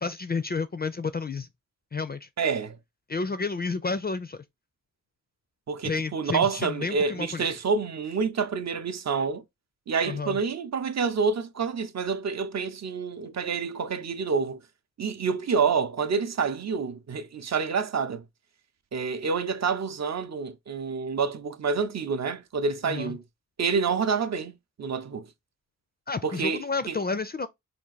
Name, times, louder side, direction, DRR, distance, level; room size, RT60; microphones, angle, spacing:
voice 1, 0.0-1.5 1.9-2.3 3.1-4.4 5.8-7.5 10.0-10.4 22.8-23.2 26.1-27.5, left 4 dB, 30° left, 0.4 m, -30 dB
voice 2, 2.4-2.8 5.7-9.4 9.9-14.6 15.0-18.2 18.9-23.2 23.6-24.5 24.8-25.3 26.2-27.0, right 5 dB, 55° right, 0.6 m, -28 dB
3.5 x 2.4 x 3.9 m
cardioid pair, 60°, 33 cm